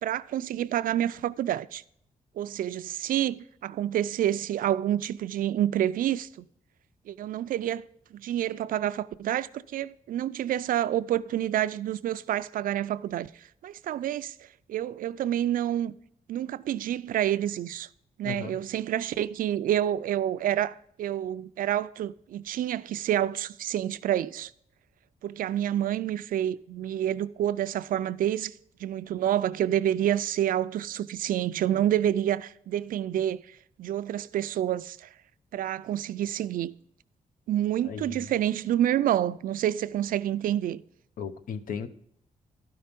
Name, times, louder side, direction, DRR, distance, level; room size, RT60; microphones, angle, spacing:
voice 1, 0.0-1.8 2.4-6.5 7.1-13.3 13.6-14.3 14.7-16.0 16.3-17.9 18.2-24.5 25.2-28.5 28.8-33.4 33.8-35.1 35.5-36.7 37.5-40.8, right 11 dB, 85° right, 0.4 m, -28 dB
voice 2, 18.2-18.6 37.8-38.3 41.2-41.9, left 7 dB, 80° left, 0.8 m, -36 dB
12.0 x 5.6 x 5.1 m
wide cardioid pair, 150°, 14 cm